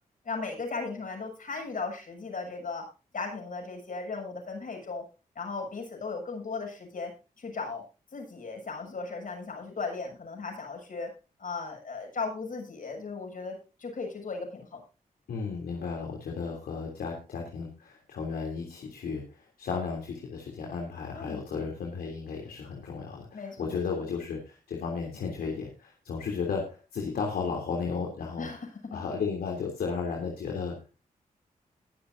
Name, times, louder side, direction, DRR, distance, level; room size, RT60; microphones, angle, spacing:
voice 1, 0.2-2.9 3.1-5.0 5.4-7.1 7.4-7.8 8.1-11.1 11.4-14.8 21.1-21.4 23.3-23.8 28.4-29.0, left 4 dB, 60° left, 2 dB, 7.6 m, -36 dB
voice 2, 15.3-28.5 28.9-31.0, left 5 dB, 90° left, 1 dB, 3.1 m, -34 dB
21.5 x 7.8 x 2.7 m, 0.33 s
cardioid pair, 50°, 15 cm